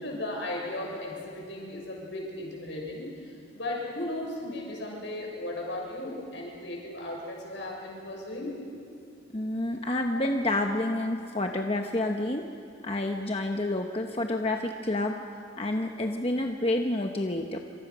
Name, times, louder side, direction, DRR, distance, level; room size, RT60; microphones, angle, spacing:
voice 1, 0.0-3.3 3.5-8.6, left 1 dB, 75° left, -1 dB, 7.1 m, -36 dB
voice 2, 9.3-12.4 12.8-15.2 15.6-17.6, left 1 dB, 30° left, 3 dB, 1.1 m, -29 dB
27.5 x 26.0 x 6.2 m, 2.4 s
head